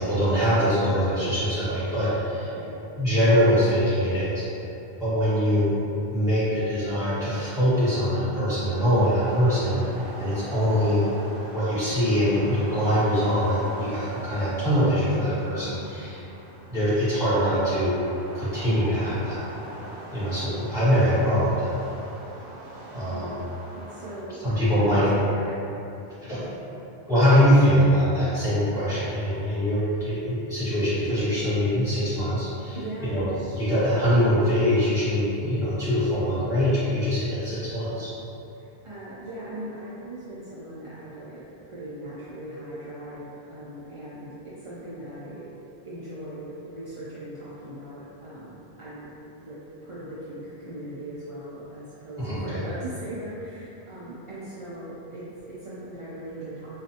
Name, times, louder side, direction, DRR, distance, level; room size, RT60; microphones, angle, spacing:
voice 1, 0.1-2.5 2.9-4.4 5.0-5.7 6.1-9.8 10.2-11.1 11.5-16.2 16.7-17.9 18.3-19.4 20.1-21.7 22.9-23.4 24.4-25.1 26.2-26.5 27.1-38.1 52.2-52.6, equal, 5° right, -13 dB, 1.4 m, -23 dB
sound 1, 9.0-24.2, right 1 dB, 65° right, 0.8 m, -42 dB
voice 2, 23.0-25.6 32.8-33.2 38.5-45.5 45.8-56.8, right 1 dB, 45° right, -10 dB, 0.4 m, -39 dB
4.1 x 2.4 x 2.7 m, 2.9 s
omnidirectional pair, 1.1 m